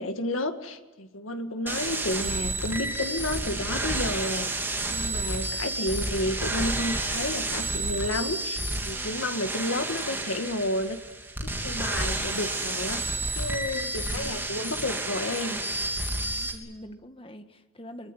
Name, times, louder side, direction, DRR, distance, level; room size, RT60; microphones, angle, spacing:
voice 1, 0.0-11.0 11.4-15.6, left 1 dB, 90° left, 7 dB, 2.0 m, -31 dB
sound 1, 1.7-16.5, right 2 dB, 10° right, 3.3 m, -30 dB
voice 2, 13.7-14.3 16.2-18.1, equal, 25° left, 8 dB, 1.7 m, -45 dB
25.5 x 22.5 x 10.0 m, 1.1 s
head